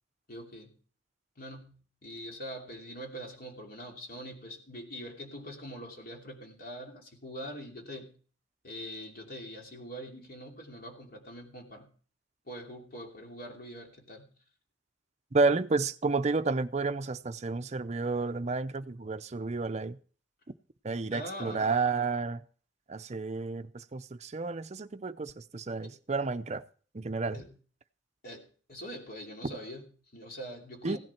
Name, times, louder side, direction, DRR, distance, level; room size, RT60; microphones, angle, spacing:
voice 1, 0.3-0.8 1.4-8.2 8.6-11.9 12.5-14.3 21.1-21.7 25.8-26.0 27.3-27.6 28.2-31.0, equal, 50° left, 2.8 m, -43 dB
voice 2, 15.3-20.0 20.8-22.4 22.9-26.6 26.9-27.4 29.4-29.5 30.8-31.0, right 3 dB, 35° right, 0.6 m, -31 dB
16.5 x 11.0 x 4.4 m
head